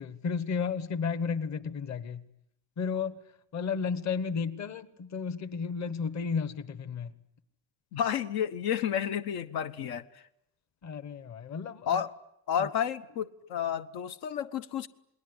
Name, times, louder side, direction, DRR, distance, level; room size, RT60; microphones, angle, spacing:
voice 1, 0.0-2.2 2.8-3.2 3.5-7.1 10.8-12.0 12.6-12.7, left 5 dB, 50° left, 1.4 m, -33 dB
voice 2, 7.9-10.2 11.9-12.1 12.5-14.9, left 9 dB, 90° left, 1.0 m, -31 dB
28.0 x 20.5 x 9.8 m
cardioid pair, 145°, 36 cm